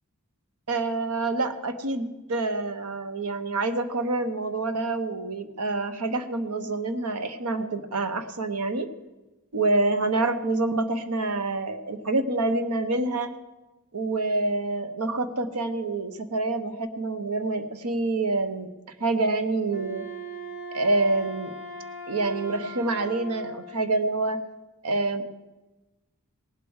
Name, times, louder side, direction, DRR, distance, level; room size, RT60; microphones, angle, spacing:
voice 1, 0.7-8.9 9.5-13.3 13.9-18.7 19.0-20.1 20.7-21.5 22.1-24.4 24.8-25.2, right 2 dB, 85° right, 10 dB, 1.0 m, -27 dB
Wind instrument woodwind instrument, 19.6-23.8, equal, 15° right, 3.4 m, -39 dB
17.5 x 8.0 x 6.4 m, 1.1 s
head